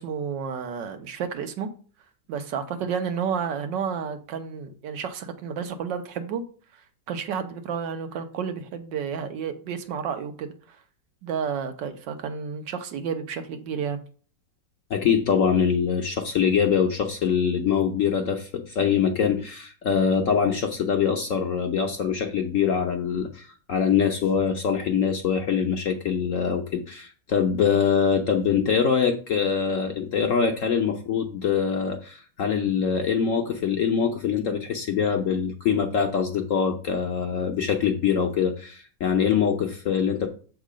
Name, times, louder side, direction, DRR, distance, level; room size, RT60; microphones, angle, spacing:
voice 1, 0.0-1.7 2.3-6.4 7.1-10.8 11.2-14.0, right 7 dB, 80° right, 1.5 m, -31 dB
voice 2, 14.9-40.3, left 7 dB, 65° left, 0.8 m, -24 dB
7.3 x 3.7 x 5.0 m
omnidirectional pair, 1.9 m